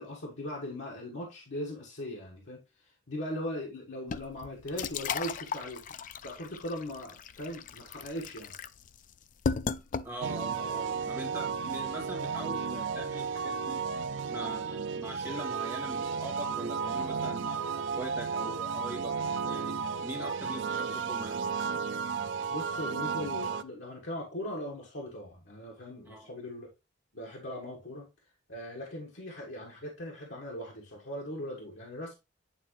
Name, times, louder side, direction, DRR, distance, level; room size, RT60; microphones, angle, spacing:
voice 1, 0.0-5.8 6.2-8.5 20.2-20.3 22.5-26.7 27.1-28.1 28.5-32.2, left 1 dB, 75° left, 1.5 m, -39 dB
sound 1, 4.1-10.5, left 5 dB, 45° left, 0.3 m, -36 dB
voice 2, 10.0-13.8 14.3-19.1 19.4-21.4 26.1-26.3, right 1 dB, 10° right, 1.8 m, -42 dB
sound 2, 10.2-23.6, right 5 dB, 75° right, 0.4 m, -33 dB
8.9 x 3.6 x 3.1 m
head